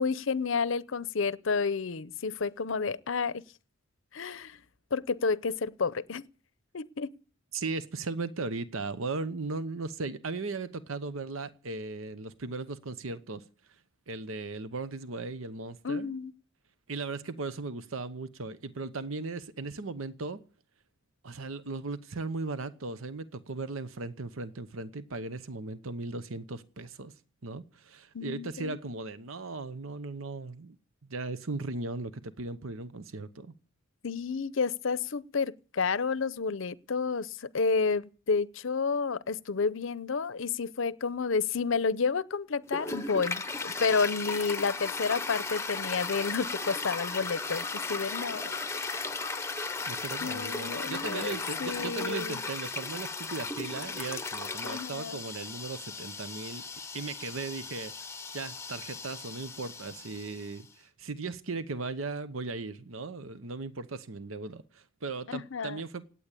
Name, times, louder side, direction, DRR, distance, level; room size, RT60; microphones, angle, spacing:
voice 1, 0.0-3.4 4.1-4.6 4.9-6.2 6.7-7.1 15.8-16.3 28.1-28.8 34.0-48.6 48.9-49.2 50.2-52.4 54.6-55.2 65.3-65.8, left 5 dB, 70° left, 0.6 m, -30 dB
voice 2, 7.5-13.8 14.1-16.1 16.9-20.4 21.2-27.1 27.4-30.8 31.0-33.5 49.6-56.6 56.9-66.1, right 3 dB, 80° right, 0.9 m, -37 dB
Toilet flush, 42.7-60.6, left 4 dB, 15° left, 0.7 m, -36 dB
17.5 x 8.7 x 8.4 m
head